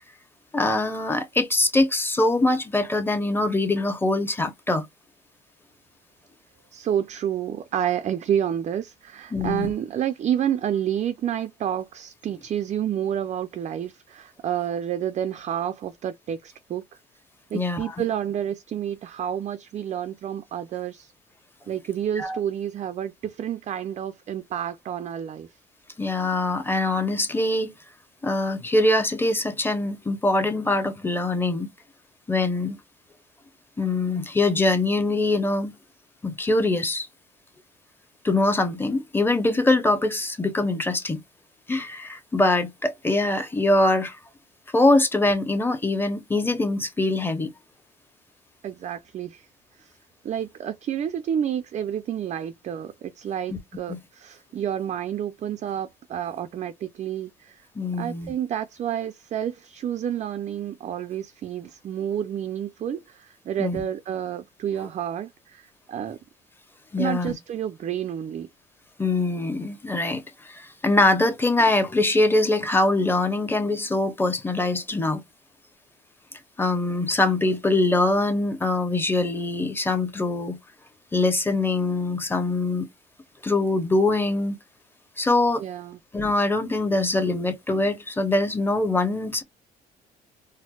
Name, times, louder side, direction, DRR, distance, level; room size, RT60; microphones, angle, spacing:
voice 1, 0.5-4.9 9.3-9.7 17.5-17.9 22.2-22.4 26.0-27.7 28.2-31.7 32.3-32.8 33.8-35.7 36.2-37.1 38.2-41.2 41.7-44.2 44.7-47.5 53.5-53.6 53.9-54.0 57.7-58.3 63.6-63.8 66.9-67.3 69.0-75.2 76.6-80.6 81.1-82.9 83.4-84.5 85.2-85.6 86.1-89.4, left 2 dB, 10° left, 0.8 m, -23 dB
voice 2, 6.7-16.8 17.5-21.1 21.7-25.5 48.6-49.5 49.8-49.9 50.2-57.6 58.0-66.2 67.0-68.5 85.6-86.0, right 9 dB, 45° right, 0.4 m, -29 dB
4.3 x 2.0 x 2.3 m
cardioid pair, 110°, 17 cm